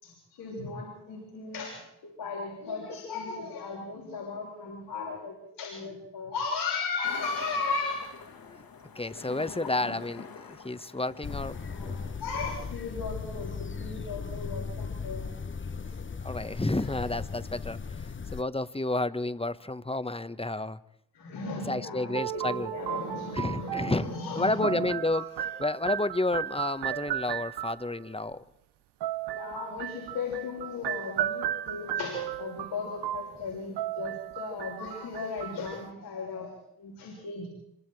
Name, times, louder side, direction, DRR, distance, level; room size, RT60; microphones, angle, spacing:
voice 1, 0.0-8.1 9.5-10.0 11.5-15.3 15.8-15.9 16.4-16.6 16.8-17.0 21.1-24.9 25.2-25.5 29.3-37.5, left 4 dB, 85° left, -4 dB, 6.1 m, -36 dB
sound 1, 7.0-12.2, left 5 dB, 60° left, 2.7 m, -46 dB
voice 2, 8.9-12.0 16.2-20.8 21.6-22.7 23.3-25.3 25.6-28.4, left 2 dB, 15° left, 13 dB, 1.2 m, -31 dB
sound 2, 11.2-18.4, left 5 dB, 30° left, 0.9 m, -37 dB
sound 3, 22.1-28.0 29.0-35.9, right 12 dB, 75° right, 0.8 m, -35 dB
26.0 x 24.0 x 4.8 m, 0.78 s
supercardioid pair, 40°, 40 cm